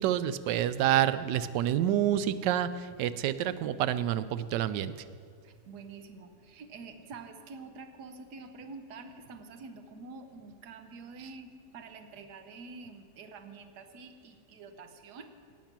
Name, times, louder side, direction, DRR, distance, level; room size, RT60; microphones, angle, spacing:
voice 1, 0.0-4.9, right 11 dB, 90° right, 14 dB, 1.2 m, -28 dB
voice 2, 5.4-15.3, right 4 dB, 70° right, 7 dB, 1.5 m, -47 dB
18.0 x 7.4 x 5.9 m, 2.1 s
omnidirectional pair, 1.8 m